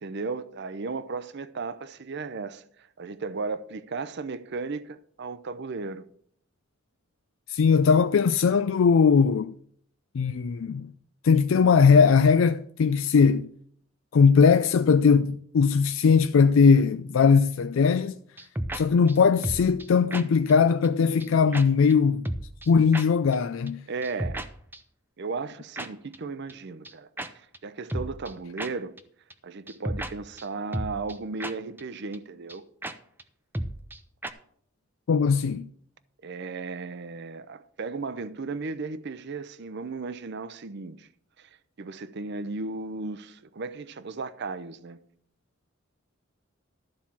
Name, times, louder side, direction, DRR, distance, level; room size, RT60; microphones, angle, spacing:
voice 1, 0.0-2.6 3.0-6.0 23.9-24.5 25.2-27.1 27.3-28.9 29.4-32.6 36.2-41.1 41.4-41.5 41.8-45.0, right 4 dB, 60° right, 0.6 m, -35 dB
voice 2, 7.5-9.5 10.1-10.9 11.2-13.5 14.1-18.2 18.7-22.2 22.7-23.8 35.1-35.7, left 5 dB, 70° left, 0.4 m, -20 dB
sound 1, 18.4-18.8 19.1-19.2 19.4-19.9 20.1-20.2 20.5-20.6 20.8-20.9 21.2-21.3 21.5-21.6 21.9-22.0 22.3-22.7 22.9-23.0 23.3-23.4 23.7-23.8 24.0-24.5 24.7-24.8 25.8-25.9 26.1-26.2 26.5-26.6 26.8-26.9 27.2-27.3 27.5-27.6 27.9-28.3 28.6-28.7 29.0-29.1 29.3-29.4 29.7-30.1 30.4-30.5 30.7-31.1 31.4-31.5 31.8-31.9 32.1-32.2 32.5-32.6 32.8-32.9 33.2-33.3 33.5-34.0 34.2-34.3, right 1 dB, 10° right, 0.6 m, -32 dB
13.0 x 4.4 x 7.2 m
head